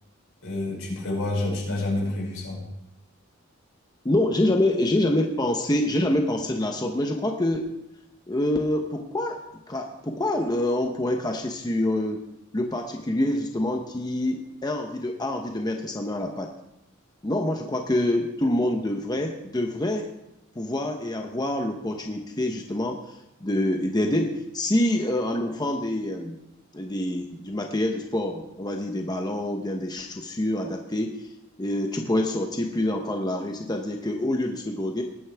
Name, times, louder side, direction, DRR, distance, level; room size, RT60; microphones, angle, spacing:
voice 1, 0.4-2.6, left 2 dB, 75° left, -3 dB, 5.7 m, -28 dB
voice 2, 4.0-7.7 8.3-9.4 9.7-12.2 12.5-16.5 17.2-20.1 20.5-23.2 23.4-26.4 26.7-31.3 31.6-35.0, left 1 dB, 20° left, 3 dB, 0.8 m, -26 dB
19.5 x 9.3 x 3.4 m, 0.87 s
head